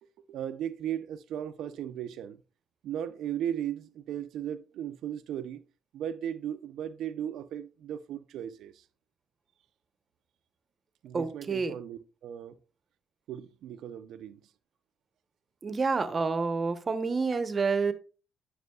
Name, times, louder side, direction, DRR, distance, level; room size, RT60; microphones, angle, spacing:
voice 1, 0.3-2.4 2.8-5.6 5.9-8.7 11.0-12.6 13.3-14.4, right 10 dB, 80° right, 0.5 m, -36 dB
voice 2, 11.1-11.7 15.6-17.9, right 4 dB, 35° right, 0.9 m, -28 dB
9.3 x 6.2 x 2.3 m
cardioid pair, 90°, 0 cm